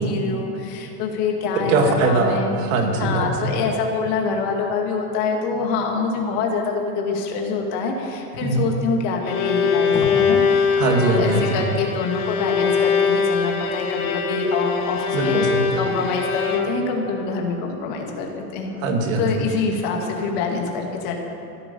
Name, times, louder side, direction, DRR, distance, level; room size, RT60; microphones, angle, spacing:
voice 1, 0.0-2.5 3.0-15.4 15.8-18.7 19.2-21.2, left 4 dB, 35° left, 1 dB, 2.1 m, -25 dB
voice 2, 1.6-3.6 8.4-8.7 10.8-11.7 15.1-15.8 18.8-19.3, right 3 dB, 55° right, 3 dB, 2.2 m, -21 dB
Bowed string instrument, 9.0-17.0, left 6 dB, 60° left, 2.1 m, -22 dB
15.0 x 12.5 x 6.9 m, 2.8 s
supercardioid pair, 180°, 47 cm